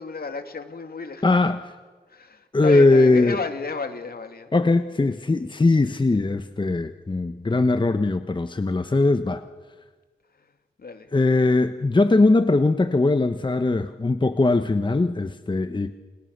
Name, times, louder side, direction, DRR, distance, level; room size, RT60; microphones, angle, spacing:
voice 1, 0.0-1.5 2.1-4.5 10.4-10.5 10.8-11.1, left 4 dB, 60° left, 7 dB, 2.9 m, -33 dB
voice 2, 1.2-1.7 2.5-3.4 4.5-9.4 11.1-15.9, left 2 dB, 25° left, 9 dB, 1.1 m, -20 dB
30.0 x 29.5 x 6.8 m, 1.4 s
wide cardioid pair, 80°, 18 cm